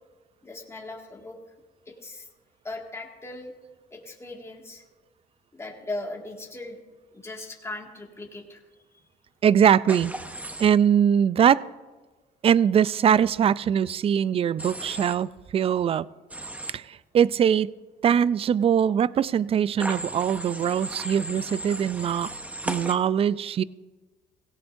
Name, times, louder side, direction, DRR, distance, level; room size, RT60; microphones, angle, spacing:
voice 1, 0.4-1.4 1.9-2.3 2.6-3.5 3.9-4.8 5.5-6.8 7.1-8.6 8.9-9.0 16.6-16.7, left 2 dB, 15° left, 0 dB, 2.0 m, -38 dB
voice 2, 9.4-10.1 10.6-11.6 12.4-16.1 16.7-17.7 18.0-22.3 22.7-23.6, right 8 dB, 35° right, 19 dB, 0.4 m, -22 dB
Human voice / Train, 9.9-10.7 14.6-15.1 16.3-16.7 19.8-22.9, right 1 dB, 10° right, 1.0 m, -35 dB
17.5 x 17.0 x 2.6 m, 1.3 s
cardioid pair, 110°, 17 cm